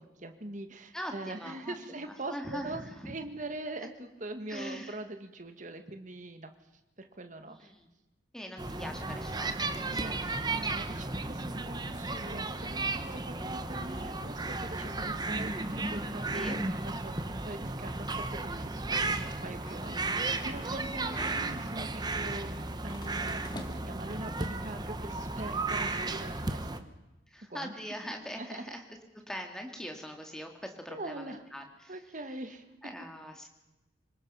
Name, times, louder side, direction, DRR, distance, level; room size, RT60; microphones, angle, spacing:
voice 1, 0.0-6.5 7.0-7.7 9.9-26.9 27.5-27.7 28.4-28.7 30.9-31.4 31.9-32.7, right 2 dB, 40° right, 7 dB, 1.6 m, -43 dB
voice 2, 0.9-3.1 4.5-5.0 7.4-7.9 8.3-10.8 16.3-16.6 21.1-21.3 27.3-28.8 29.3-32.0 32.8-33.5, equal, 5° left, 3 dB, 2.2 m, -42 dB
sound 1, 8.6-26.8, right 3 dB, 20° right, 1.0 m, -34 dB
sound 2, 19.7-20.8 21.1-21.5 22.9-24.1, left 1 dB, 20° left, 1.6 m, -47 dB
26.5 x 19.0 x 5.6 m, 1.0 s
head